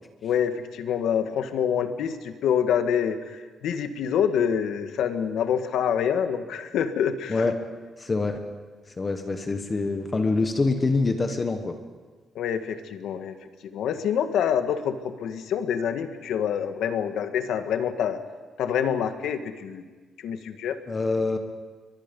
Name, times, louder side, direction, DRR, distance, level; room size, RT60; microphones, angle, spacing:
voice 1, 0.2-7.4 12.3-13.3 13.7-18.2 18.6-19.9 20.2-20.8, left 8 dB, 75° left, 8 dB, 1.6 m, -26 dB
voice 2, 8.0-8.4 9.0-11.7 20.9-21.4, left 3 dB, 20° left, 6 dB, 1.2 m, -25 dB
28.5 x 23.0 x 5.4 m, 1.4 s
cardioid pair, 175°, 0 cm